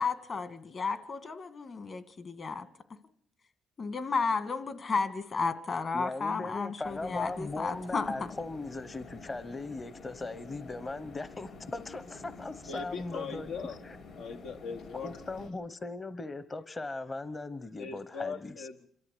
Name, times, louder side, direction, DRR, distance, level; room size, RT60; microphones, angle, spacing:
voice 1, 0.0-2.7 3.8-8.1, left 4 dB, 45° left, 2.0 m, -33 dB
voice 2, 5.9-13.5 13.8-14.0 15.0-18.7, left 2 dB, 25° left, 1.0 m, -39 dB
sound 1, 6.8-15.5, left 3 dB, 65° left, 5.8 m, -49 dB
voice 3, 12.7-13.8 14.2-15.1 17.8-18.9, left 5 dB, 90° left, 1.5 m, -39 dB
27.0 x 13.5 x 8.5 m
cardioid pair, 90°, 0 cm